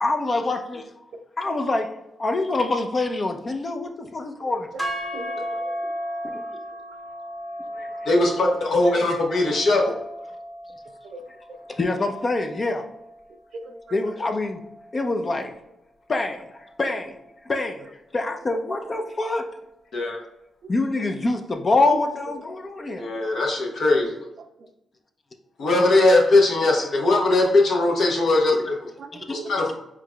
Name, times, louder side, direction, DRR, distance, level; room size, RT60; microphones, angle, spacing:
voice 1, 0.0-0.9 1.4-1.9 2.2-4.7 7.7-8.1 8.8-8.9 11.7-12.8 13.9-14.6 14.9-15.5 16.1-17.2 17.5-19.4 20.7-23.0 25.6-25.7 29.1-29.4, left 2 dB, 40° left, 4 dB, 0.6 m, -25 dB
voice 2, 4.4-4.8 5.1-6.0 6.2-6.6 11.0-11.2 11.5-11.6 13.5-14.3 18.5-18.6 20.1-20.3 20.6-20.7 21.0-21.1 22.6-23.0 24.0-24.1 24.4-24.7 25.6-25.8 29.0-29.5, right 3 dB, 70° right, 6 dB, 0.5 m, -41 dB
sound 1, 4.8-13.0, equal, 20° left, 1.2 m, -35 dB
voice 3, 8.0-9.8 19.9-20.2 23.0-24.2 25.6-28.9 29.3-29.7, left 2 dB, 70° left, -1 dB, 1.3 m, -20 dB
4.7 x 3.8 x 2.3 m, 0.88 s
cardioid pair, 70°, 0 cm